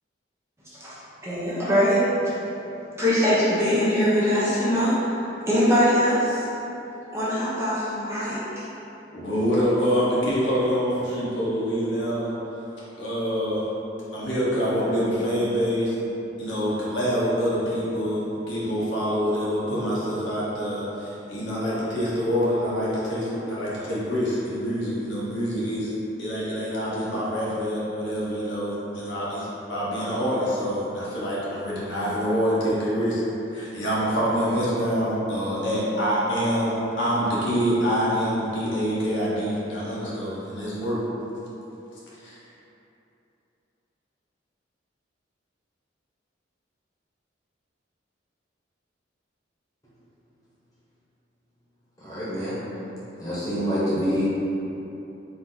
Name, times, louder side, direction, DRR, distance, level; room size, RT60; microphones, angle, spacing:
voice 1, 1.2-2.0 3.0-5.1 5.5-6.5 7.1-8.6, equal, 15° right, -10 dB, 0.8 m, -22 dB
voice 2, 9.1-12.3 13.0-13.6 14.1-16.0 16.4-25.9 26.2-33.2 33.5-36.7 37.0-41.0 42.2-42.4, equal, 75° left, -8 dB, 1.2 m, -26 dB
voice 3, 52.0-52.6 53.2-54.3, equal, 20° left, -11 dB, 1.2 m, -26 dB
4.4 x 2.9 x 3.9 m, 2.9 s
head